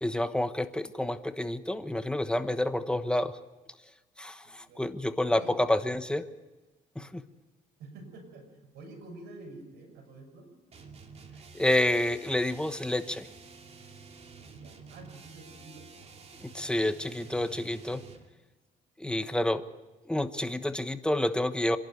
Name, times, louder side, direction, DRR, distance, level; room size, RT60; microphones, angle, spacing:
voice 1, 0.0-3.3 4.2-6.2 7.0-7.2 11.5-13.3 16.4-18.0 19.0-19.6 20.1-21.8, left 1 dB, 5° left, 10 dB, 1.1 m, -29 dB
voice 2, 2.4-2.8 4.4-4.9 5.2-5.6 7.0-7.1 7.8-8.4 8.7-10.5 14.5-16.2 19.0-19.4, right 2 dB, 75° right, 4 dB, 6.8 m, -49 dB
sound 1, 10.7-18.3, right 5 dB, 40° right, 2.7 m, -50 dB
25.5 x 11.5 x 9.5 m, 1.1 s
cardioid pair, 110°, 17 cm